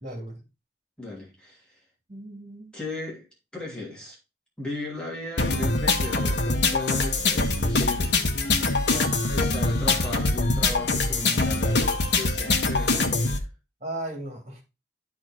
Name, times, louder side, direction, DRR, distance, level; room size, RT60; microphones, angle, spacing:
voice 1, 0.0-0.4 2.1-2.7 8.9-9.0 13.8-14.6, right 1 dB, 40° right, 3.3 m, -36 dB
voice 2, 1.0-1.8 2.7-3.2 3.5-4.2 4.6-8.2 8.9-13.5, left 2 dB, 5° left, 2.9 m, -36 dB
sound 1, 5.4-13.4, left 3 dB, 85° left, 1.6 m, -23 dB
12.5 x 4.3 x 4.4 m
head